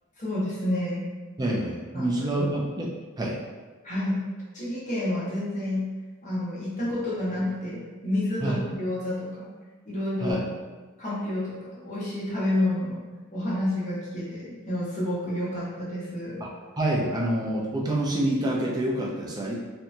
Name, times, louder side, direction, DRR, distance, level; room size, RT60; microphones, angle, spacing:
voice 1, 0.2-1.0 1.9-2.1 2.4-2.5 3.8-4.2 4.5-5.8 6.2-9.5 9.9-10.4 11.0-13.0 13.3-16.4, left 1 dB, 35° left, -8 dB, 0.8 m, -29 dB
voice 2, 1.4-2.9 3.2-3.4 8.4-8.6 10.2-10.4 16.4-16.5 16.8-19.6, right 1 dB, 20° right, -3 dB, 0.3 m, -27 dB
2.9 x 2.2 x 2.5 m, 1.3 s
head